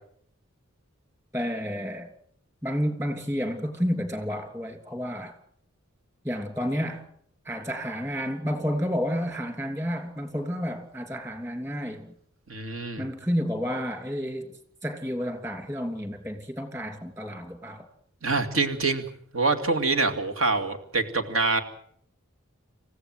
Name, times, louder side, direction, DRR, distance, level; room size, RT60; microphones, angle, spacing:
voice 1, 1.3-2.1 2.6-5.3 6.2-7.0 7.4-12.1 13.0-17.9, equal, 15° right, 3.0 m, -30 dB
voice 2, 12.5-13.1 18.2-19.0 19.3-21.6, right 3 dB, 70° right, 2.4 m, -25 dB
28.0 x 15.5 x 7.8 m
head